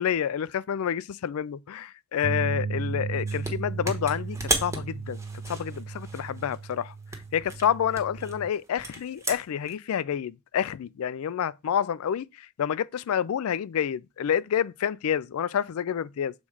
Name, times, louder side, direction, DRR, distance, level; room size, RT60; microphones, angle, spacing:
voice 1, 0.0-5.2 5.5-6.9 7.3-16.3, left 8 dB, 85° left, 0.4 m, -28 dB
sound 1, 2.2-8.5, right 4 dB, 70° right, 0.4 m, -35 dB
sound 2, 3.3-3.5 3.8-6.7 7.1-9.7, right 2 dB, 15° right, 1.1 m, -34 dB
7.1 x 3.2 x 4.8 m
head